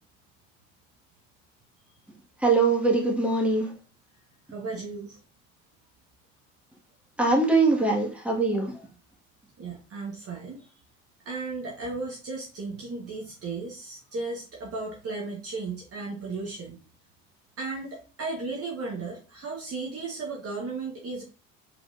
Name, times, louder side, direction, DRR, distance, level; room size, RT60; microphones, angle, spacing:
voice 1, 2.4-3.7 7.2-8.7, right 3 dB, 5° right, -1 dB, 1.7 m, -22 dB
voice 2, 4.5-5.2 9.6-10.7 11.2-16.8 17.6-21.2, right 3 dB, 35° right, -1 dB, 1.3 m, -35 dB
4.7 x 4.0 x 2.6 m, 0.34 s
hypercardioid pair, 65°, 39 cm